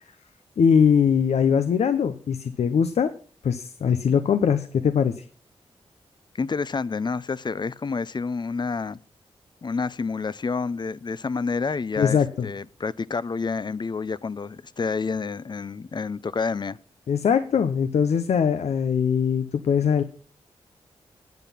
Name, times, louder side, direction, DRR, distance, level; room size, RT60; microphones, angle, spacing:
voice 1, 0.6-3.1 3.4-5.2 12.0-12.5 17.1-20.0, left 7 dB, 80° left, 0.8 m, -21 dB
voice 2, 6.3-9.0 9.6-12.2 12.4-16.8, left 4 dB, 40° left, 0.6 m, -28 dB
10.5 x 8.4 x 5.7 m
cardioid pair, 55°, 11 cm